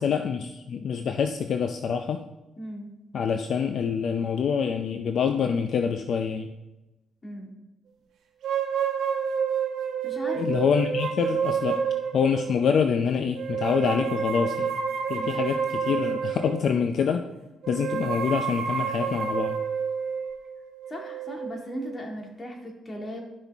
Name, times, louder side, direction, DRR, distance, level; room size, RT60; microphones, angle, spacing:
voice 1, 0.0-2.2 3.1-6.5 10.4-11.8 12.1-14.8 15.1-17.2 17.7-19.6, left 6 dB, 60° left, 7 dB, 0.5 m, -26 dB
voice 2, 2.6-2.9 7.2-7.6 10.0-10.6 15.1-15.3 20.9-23.2, equal, 30° left, 1 dB, 2.1 m, -37 dB
sound 1, 8.4-12.6 13.3-16.8 17.6-22.0, right 7 dB, 70° right, 1.3 m, -29 dB
12.0 x 5.8 x 3.5 m, 1.0 s
cardioid pair, 90°, 0 cm